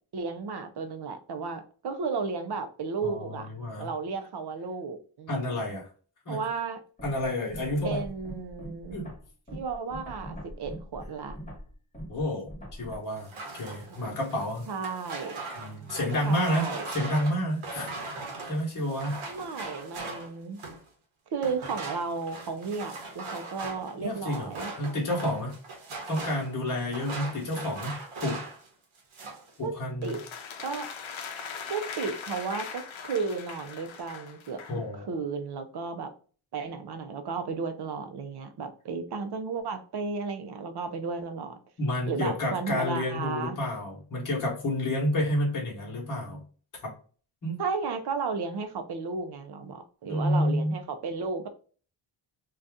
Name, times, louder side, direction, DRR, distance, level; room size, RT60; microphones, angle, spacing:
voice 1, 0.1-3.5 3.8-5.8 6.3-6.8 7.8-9.0 9.5-11.4 13.9-14.0 14.7-15.4 16.2-16.9 19.3-20.6 21.3-24.7 29.6-29.8 30.0-30.2 30.6-30.9 31.7-36.1 36.5-41.6 42.1-43.6 47.6-51.5, right 4 dB, 55° right, 0.5 m, -34 dB
voice 2, 3.0-3.9 5.3-5.9 6.3-6.4 7.0-8.0 8.9-9.1 12.1-13.3 13.6-14.6 15.6-19.2 24.0-24.5 24.8-25.6 26.1-28.4 29.6-30.2 34.7-35.1 41.8-46.4 46.8-46.9 47.4-47.6 50.1-50.8, left 1 dB, 40° left, 1.0 m, -30 dB
sound 1, 7.0-13.0, equal, 15° left, 1.1 m, -42 dB
sound 2, 13.2-20.9 21.4-28.7 28.9-29.5, right 3 dB, 85° right, 0.9 m, -40 dB
sound 3, 30.0-34.8, left 6 dB, 75° left, 0.6 m, -40 dB
2.6 x 2.3 x 3.4 m
wide cardioid pair, 160°, 49 cm